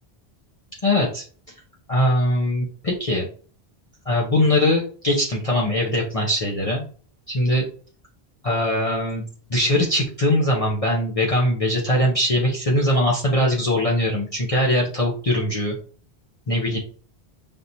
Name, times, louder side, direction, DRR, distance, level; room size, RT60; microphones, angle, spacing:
voice 1, 0.8-1.2 1.9-3.3 4.1-6.8 7.3-7.7 8.4-9.2 9.5-15.8 16.5-16.8, left 1 dB, 35° left, -4 dB, 0.8 m, -21 dB
5.2 x 2.9 x 2.6 m, 0.41 s
omnidirectional pair, 1.1 m